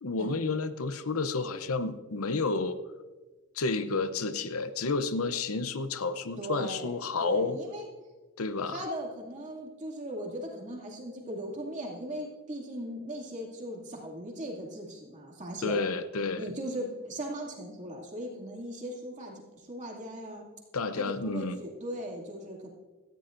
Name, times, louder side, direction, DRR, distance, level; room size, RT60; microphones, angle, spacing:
voice 1, 0.0-2.8 3.6-7.6 8.4-8.8 15.6-16.5 20.7-21.6, left 3 dB, 80° left, 11 dB, 0.7 m, -30 dB
voice 2, 6.4-7.9 8.7-15.8 16.3-19.4 19.7-20.4 21.0-22.7, right 1 dB, 35° right, -2 dB, 2.5 m, -38 dB
17.5 x 14.0 x 2.6 m, 1.3 s
head